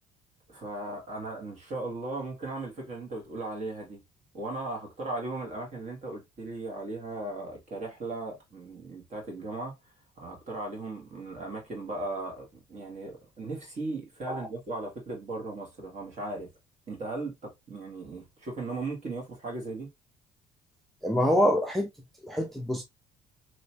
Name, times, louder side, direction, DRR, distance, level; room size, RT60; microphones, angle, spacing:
voice 1, 0.5-4.0 4.3-9.7 10.2-16.5 16.9-19.9, right 2 dB, 45° right, 2.0 m, -37 dB
voice 2, 21.0-21.9 22.2-22.8, equal, ahead, 0.6 m, -25 dB
3.1 x 3.0 x 2.8 m
cardioid pair, 110°, 17 cm